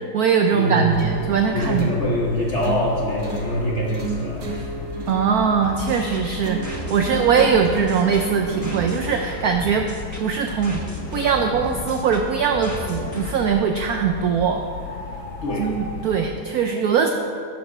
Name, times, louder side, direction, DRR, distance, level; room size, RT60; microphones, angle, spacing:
voice 1, 0.0-1.9 5.1-9.9 10.2-10.8 11.1-14.6 15.6-17.1, right 6 dB, 85° right, 5 dB, 0.8 m, -21 dB
voice 2, 0.5-1.0 1.5-4.7 15.4-15.7, left 1 dB, 45° left, -3 dB, 1.0 m, -24 dB
sound 1, 0.9-16.3, left 5 dB, 80° left, 1.9 m, -36 dB
sound 2, 1.0-9.0, right 4 dB, 55° right, 1.6 m, -33 dB
sound 3, 5.6-13.6, left 1 dB, 20° left, 0.4 m, -35 dB
11.5 x 5.4 x 5.9 m, 2.4 s
omnidirectional pair, 2.2 m